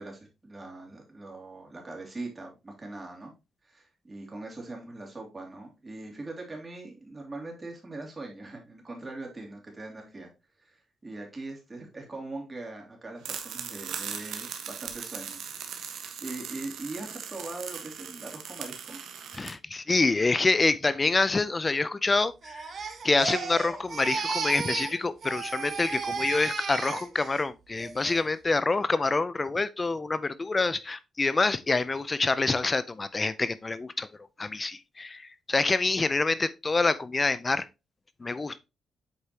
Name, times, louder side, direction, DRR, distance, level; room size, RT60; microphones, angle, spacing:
voice 1, 0.0-3.3 3.6-10.3 10.6-15.4 15.8-19.0, right 2 dB, 25° right, 2.9 m, -41 dB
sound 1, 13.2-19.5, right 7 dB, 80° right, 1.4 m, -39 dB
voice 2, 19.3-22.7 23.0-34.1 34.4-37.7 38.2-38.6, left 3 dB, 25° left, 0.5 m, -26 dB
Crying sobbing, 22.4-25.0 25.2-27.4 27.8-28.2, right 5 dB, 50° right, 1.4 m, -34 dB
8.1 x 4.9 x 2.9 m
cardioid pair, 90°, 0 cm